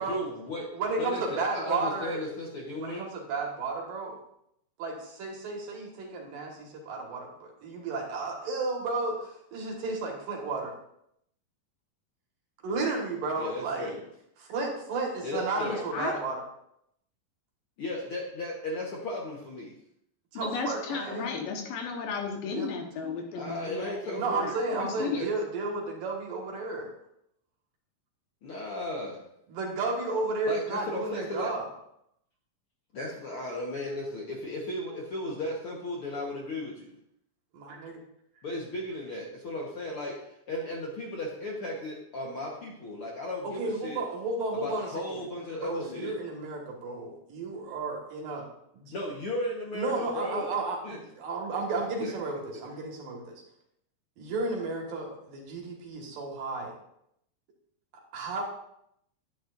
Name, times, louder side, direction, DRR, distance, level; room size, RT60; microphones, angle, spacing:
voice 1, 0.0-0.7 1.0-3.0 13.4-14.1 15.2-15.8 17.8-19.8 23.3-24.5 25.1-25.3 28.4-29.2 30.4-31.5 32.9-36.9 38.4-44.0 44.6-46.1 48.9-50.4 50.8-51.0 52.0-52.1, left 1 dB, 60° left, -3 dB, 1.5 m, -35 dB
voice 2, 0.7-2.2 2.8-4.2 4.8-10.7 12.6-13.9 14.4-16.4 20.3-21.3 22.5-22.9 24.1-26.9 29.5-31.7 37.5-38.0 43.4-45.2 45.5-48.4 48.7-48.9 49.7-53.4 54.2-56.7 58.1-58.4, right 3 dB, 75° right, -1 dB, 3.4 m, -33 dB
voice 3, 15.6-16.2 20.3-25.2, left 5 dB, 80° left, 2 dB, 2.9 m, -34 dB
10.5 x 9.9 x 2.6 m, 0.75 s
omnidirectional pair, 4.0 m